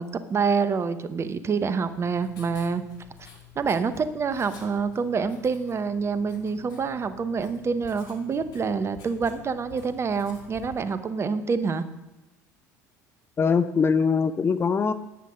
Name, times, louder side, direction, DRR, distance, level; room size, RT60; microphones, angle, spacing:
voice 1, 0.0-2.8 3.6-11.8, right 5 dB, 30° right, 12 dB, 0.8 m, -27 dB
Writing, 1.9-10.9, left 7 dB, 50° left, 2.5 m, -49 dB
voice 2, 13.4-14.9, left 5 dB, 25° left, 11 dB, 0.6 m, -22 dB
10.0 x 9.3 x 5.1 m, 1.0 s
figure-of-eight pair, 65°, 9 cm